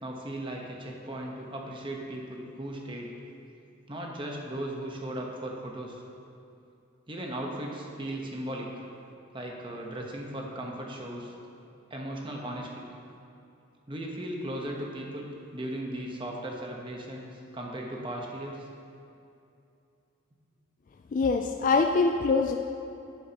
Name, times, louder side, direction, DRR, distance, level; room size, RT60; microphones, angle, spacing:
voice 1, 0.0-3.1 3.9-6.0 7.1-8.7 9.3-11.3 11.9-12.9 13.9-18.7, right 1 dB, 25° right, 0 dB, 1.0 m, -37 dB
voice 2, 21.1-22.5, left 4 dB, 40° left, 4 dB, 0.3 m, -24 dB
11.0 x 9.2 x 2.9 m, 2.6 s
head